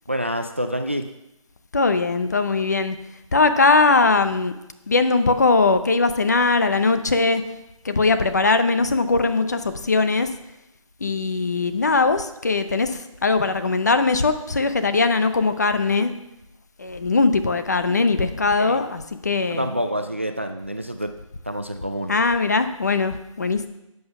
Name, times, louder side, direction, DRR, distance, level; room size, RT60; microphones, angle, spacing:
voice 1, 0.1-1.1 18.6-18.8 19.5-21.1 21.5-22.2, equal, 20° right, 7 dB, 0.4 m, -27 dB
voice 2, 1.7-3.0 3.3-4.5 4.9-7.4 7.8-10.3 11.0-16.1 16.8-19.7 22.1-23.7, left 3 dB, 30° left, 10 dB, 0.6 m, -20 dB
12.0 x 7.9 x 5.8 m, 0.90 s
figure-of-eight pair, 170°, 18 cm